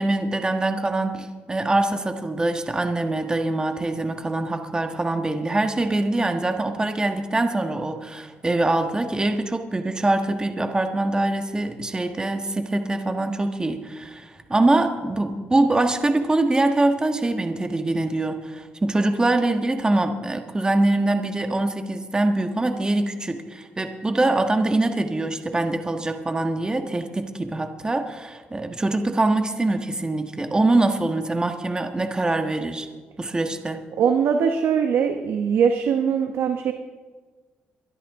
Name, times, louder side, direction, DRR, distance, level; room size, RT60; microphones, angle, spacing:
voice 1, 0.0-32.9 33.2-33.8, right 2 dB, 20° right, 6 dB, 1.5 m, -23 dB
voice 2, 34.0-36.7, right 7 dB, 75° right, 5 dB, 1.0 m, -21 dB
23.0 x 12.5 x 3.7 m, 1.4 s
cardioid pair, 85°, 4 cm